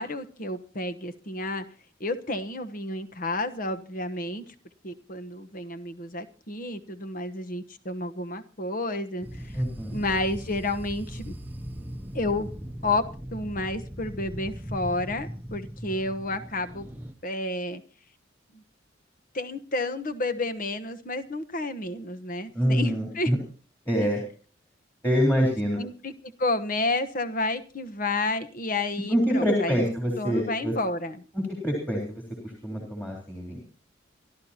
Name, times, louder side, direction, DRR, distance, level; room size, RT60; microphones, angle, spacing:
voice 1, 0.0-1.6 2.0-4.5 4.8-9.6 9.9-11.3 12.1-12.5 12.8-13.0 13.3-16.9 17.2-17.8 18.5-18.6 19.3-23.3 24.0-24.1 25.8-26.1 26.4-31.2, left 2 dB, 45° left, 9 dB, 1.1 m, -30 dB
sound 1, 9.2-17.1, equal, 10° right, 0.8 m, -39 dB
voice 2, 9.6-10.0 22.5-23.4 23.9-24.2 25.0-25.8 29.1-30.7 31.3-33.6, equal, 10° left, 0 dB, 3.9 m, -26 dB
28.5 x 12.5 x 2.9 m, 0.38 s
head